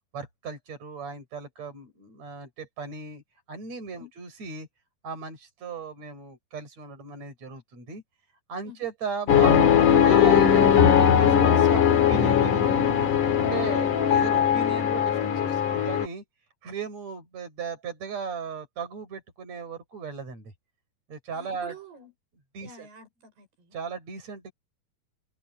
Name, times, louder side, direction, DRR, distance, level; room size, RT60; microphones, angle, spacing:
voice 1, 0.1-3.2 3.5-4.7 5.0-8.0 8.5-13.1 13.4-16.2 16.6-20.5 21.1-21.7 22.5-22.9 23.7-24.5, right 5 dB, 40° right, 7.5 m, -37 dB
sound 1, 9.3-16.1, left 8 dB, 55° left, 3.3 m, -20 dB
voice 2, 21.3-22.1 22.6-23.8, right 2 dB, 75° right, 8.4 m, -48 dB
omnidirectional pair, 4.6 m